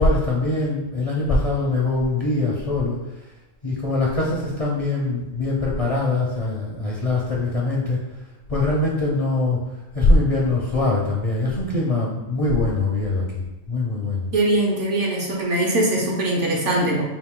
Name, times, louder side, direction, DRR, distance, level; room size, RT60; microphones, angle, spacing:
voice 1, 0.0-3.0 3.6-8.0 8.5-9.6 9.9-14.3, left 2 dB, 40° left, -4 dB, 0.5 m, -22 dB
voice 2, 14.3-17.0, right 1 dB, 65° right, -2 dB, 1.2 m, -21 dB
4.7 x 2.6 x 3.6 m, 1.0 s
omnidirectional pair, 1.3 m